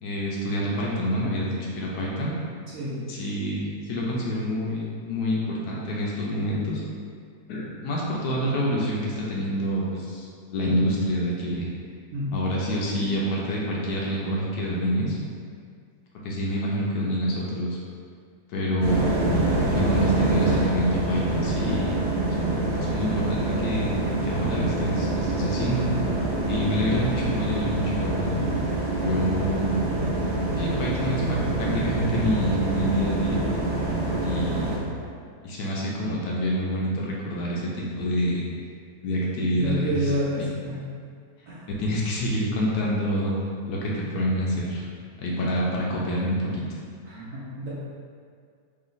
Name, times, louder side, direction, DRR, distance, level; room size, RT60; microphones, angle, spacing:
voice 1, 0.0-2.3 3.1-6.8 7.5-11.7 12.3-15.2 16.2-17.8 18.5-19.1 19.6-21.9 22.3-22.5 22.9-24.0 24.3-25.9 26.5-28.4 29.0-29.7 30.5-33.4 34.2-34.7 35.4-38.4 39.0-40.1 41.7-43.3 43.7-44.8 45.2-46.6, equal, 70° left, -4 dB, 1.0 m, -27 dB
voice 2, 2.7-3.1 12.1-12.4 39.6-40.8 41.5-41.7 47.1-47.7, equal, 60° right, -8 dB, 0.9 m, -29 dB
sound 1, 18.8-34.8, right 2 dB, 85° right, 0.5 m, -26 dB
3.2 x 3.0 x 3.9 m, 2.2 s
omnidirectional pair, 2.0 m